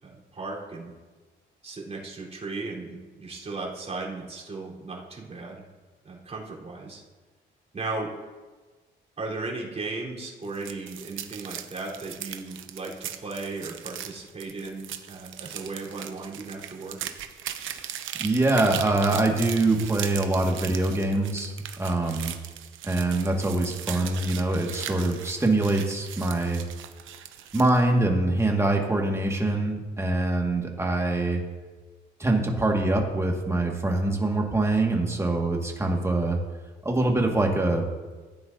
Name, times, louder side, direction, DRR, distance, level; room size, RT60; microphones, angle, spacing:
voice 1, 0.0-0.9 1.6-5.6 6.0-7.0 7.7-8.1 9.2-17.0, right 3 dB, 35° right, -4 dB, 4.0 m, -36 dB
sound 1, 10.4-27.8, right 10 dB, 80° right, 0.9 m, -39 dB
voice 2, 18.2-21.5 21.8-22.4 22.8-26.6 27.5-31.4 32.2-36.4 36.8-37.8, right 2 dB, 15° right, 0 dB, 1.9 m, -24 dB
16.0 x 9.4 x 2.7 m, 1.3 s
cardioid pair, 90°, 20 cm